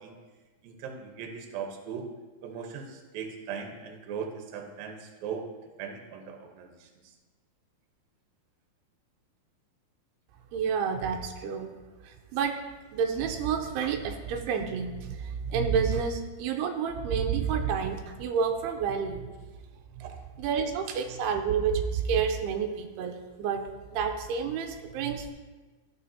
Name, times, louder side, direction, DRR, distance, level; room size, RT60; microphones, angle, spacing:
voice 1, 0.6-2.1 2.4-5.5 5.8-6.7 20.0-20.2 20.9-21.0, right 7 dB, 70° right, 3 dB, 2.5 m, -38 dB
voice 2, 10.5-11.7 12.3-12.6 12.9-15.2 15.5-19.3 20.4-23.6 23.9-25.3, right 6 dB, 90° right, 4 dB, 2.7 m, -29 dB
14.0 x 6.3 x 2.7 m, 1.3 s
omnidirectional pair, 4.5 m